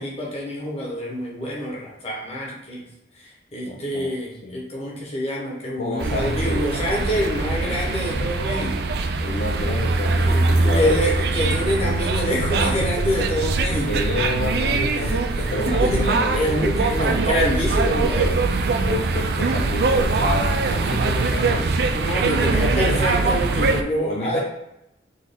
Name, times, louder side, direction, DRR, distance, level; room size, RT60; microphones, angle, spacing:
voice 1, 0.0-2.8 3.2-8.8 10.3-14.0 15.0-15.1 15.6-18.4 21.9-24.4, equal, 35° left, -3 dB, 1.2 m, -26 dB
voice 2, 3.6-4.1 4.4-4.6 5.8-6.7 9.2-11.0 13.8-17.0 18.8-21.7 22.3-23.0 24.0-24.4, left 2 dB, 50° left, -1 dB, 0.5 m, -29 dB
sound 1, 6.0-23.8, right 3 dB, 55° right, 0.3 m, -22 dB
3.9 x 3.1 x 3.7 m, 0.84 s
head